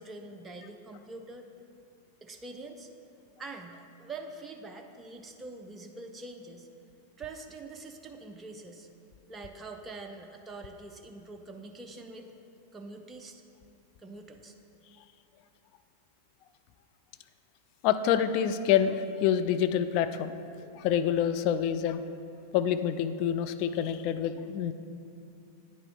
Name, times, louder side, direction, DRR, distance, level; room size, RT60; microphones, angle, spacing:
voice 1, 0.0-1.5 2.2-2.9 3.4-6.7 7.2-8.9 9.3-12.3 12.7-13.4 14.0-14.5, right 3 dB, 15° right, 4 dB, 0.5 m, -44 dB
voice 2, 17.8-20.3 20.6-22.0 22.5-24.7, left 9 dB, 45° left, 10 dB, 0.3 m, -27 dB
9.3 x 4.8 x 3.8 m, 2.7 s
figure-of-eight pair, 90°, 0 cm